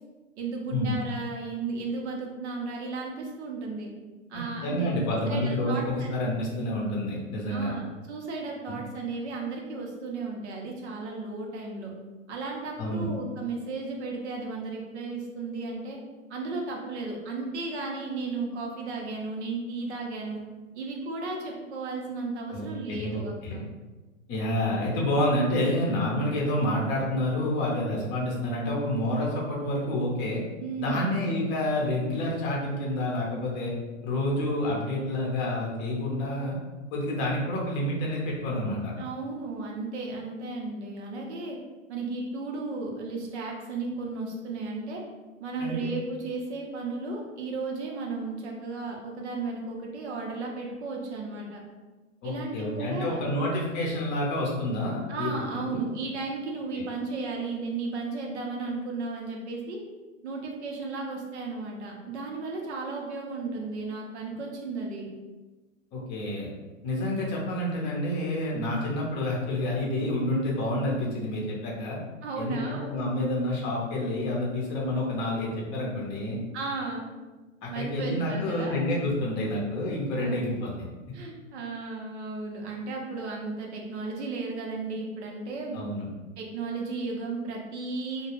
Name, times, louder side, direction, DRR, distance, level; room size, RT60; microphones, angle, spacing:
voice 1, 0.4-3.9 4.3-6.2 7.5-11.9 12.3-16.0 16.3-20.4 20.7-23.6 30.6-31.2 39.0-41.6 41.9-45.0 45.4-51.6 52.2-53.3 55.1-59.8 60.2-65.1 72.2-72.9 76.5-77.1 77.7-78.8 80.1-80.4 81.1-85.8 86.4-88.3, right 3 dB, 55° right, 0 dB, 0.8 m, -34 dB
voice 2, 4.3-7.7 8.7-8.8 12.8-13.1 22.5-23.6 24.3-30.4 30.8-33.7 34.0-36.6 36.9-38.9 45.6-45.9 52.2-55.8 56.7-56.9 65.9-66.5 66.8-72.0 72.4-76.4 77.6-80.7 85.7-86.1, left 1 dB, 30° left, -3 dB, 0.7 m, -28 dB
2.3 x 2.2 x 3.1 m, 1.2 s
hypercardioid pair, 115°, 40 cm